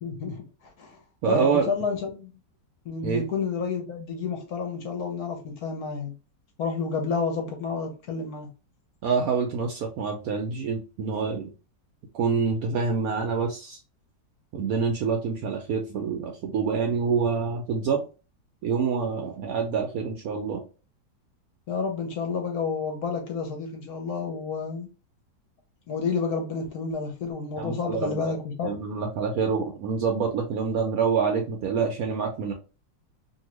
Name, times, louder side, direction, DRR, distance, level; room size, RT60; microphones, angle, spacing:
voice 1, 0.0-0.4 0.8-1.0 1.3-2.3 2.8-6.1 6.6-8.5 21.7-24.9 25.9-28.7, left 5 dB, 65° left, 1.0 m, -30 dB
voice 2, 1.2-1.7 3.0-3.2 9.0-11.5 12.1-13.8 14.5-18.0 18.6-20.6 27.6-28.3 28.6-32.5, right 5 dB, 70° right, 0.8 m, -26 dB
2.8 x 2.6 x 2.9 m
omnidirectional pair, 2.0 m